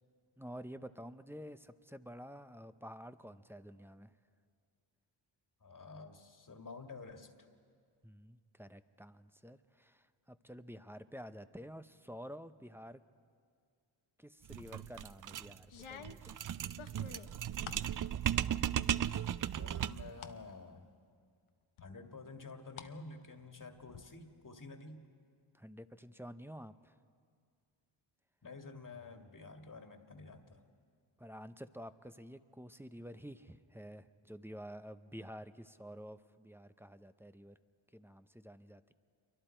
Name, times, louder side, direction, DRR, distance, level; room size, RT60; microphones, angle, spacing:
voice 1, 0.4-4.1 8.0-13.0 14.2-16.3 25.5-27.0 31.2-37.6 37.9-38.9, equal, 5° right, 11 dB, 0.7 m, -50 dB
voice 2, 5.6-7.3 19.1-19.3 19.6-20.9 21.8-25.0 28.4-30.6, left 3 dB, 40° left, 5 dB, 2.0 m, -50 dB
sound 1, 14.5-20.2, right 10 dB, 45° right, 0.4 m, -36 dB
sound 2, 14.6-15.0 15.7-17.9 18.4-18.9 19.3-20.4 20.8-20.9 21.8-22.9 23.2-24.0, left 8 dB, 80° left, 1.0 m, -51 dB
27.5 x 24.0 x 4.5 m, 2.1 s
cardioid pair, 60°, 48 cm